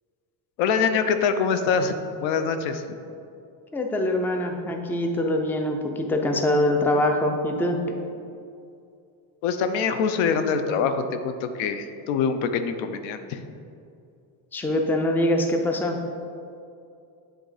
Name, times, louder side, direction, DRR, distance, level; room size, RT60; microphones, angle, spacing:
voice 1, 0.6-1.9 2.2-2.8 9.4-13.4, left 6 dB, 80° left, 9 dB, 0.7 m, -24 dB
voice 2, 3.7-8.0 14.5-16.0, left 1 dB, 5° left, 4 dB, 0.4 m, -24 dB
7.7 x 3.8 x 4.8 m, 2.5 s
cardioid pair, 105°, 46 cm